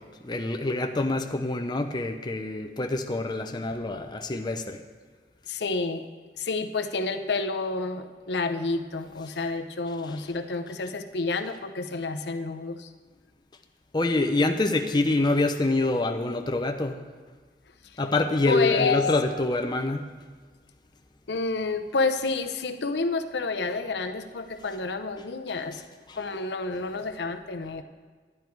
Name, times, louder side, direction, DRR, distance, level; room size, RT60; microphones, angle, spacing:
voice 1, 0.2-4.8 10.1-10.2 13.9-17.0 18.0-20.1 26.1-26.2, left 2 dB, 25° left, 4 dB, 0.6 m, -26 dB
voice 2, 5.5-6.1 6.4-12.9 17.8-18.0 18.4-19.2 21.3-25.8 26.2-27.8, left 3 dB, 70° left, 7 dB, 0.6 m, -29 dB
11.0 x 10.5 x 4.6 m, 1.5 s
head